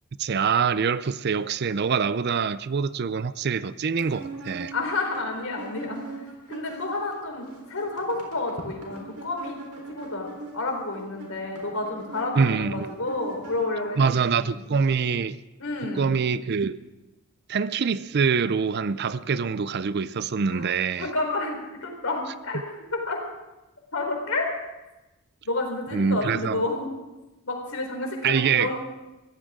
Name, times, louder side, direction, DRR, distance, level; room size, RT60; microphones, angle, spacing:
voice 1, 0.2-4.7 12.4-12.9 14.0-15.4 16.0-16.8 17.5-21.1 25.9-26.6 28.2-28.7, right 6 dB, 50° right, 0.4 m, -25 dB
sound 1, 4.0-7.1 7.4-14.1, right 3 dB, 85° right, 3.9 m, -41 dB
voice 2, 4.7-9.6 9.9-14.7 15.6-16.1 20.5-20.7 21.0-22.6 22.9-23.2 23.9-24.5 25.4-26.9 27.5-28.8, left 2 dB, 70° left, 3.9 m, -30 dB
22.5 x 15.5 x 3.7 m
head